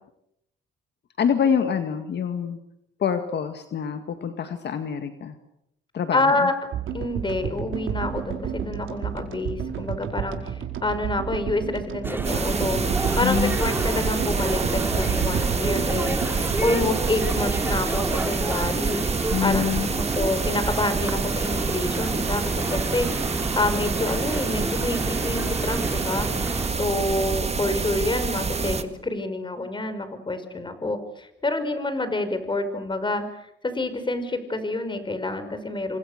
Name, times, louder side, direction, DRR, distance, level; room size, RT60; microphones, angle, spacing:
voice 1, 1.2-2.6 3.0-5.4 5.9-6.5 13.2-13.6 19.3-19.9, left 7 dB, 60° left, 8 dB, 2.0 m, -26 dB
voice 2, 6.1-6.5 6.9-19.0 19.4-19.6 19.9-26.3 26.7-36.0, left 2 dB, 25° left, 9 dB, 5.3 m, -28 dB
sound 1, 6.7-19.1, right 8 dB, 80° right, 4.7 m, -32 dB
sound 2, 12.0-26.7, right 1 dB, 10° right, 2.7 m, -31 dB
sound 3, 12.2-28.8, right 4 dB, 30° right, 2.0 m, -27 dB
28.0 x 26.5 x 6.7 m, 0.79 s
cardioid pair, 90°, 20 cm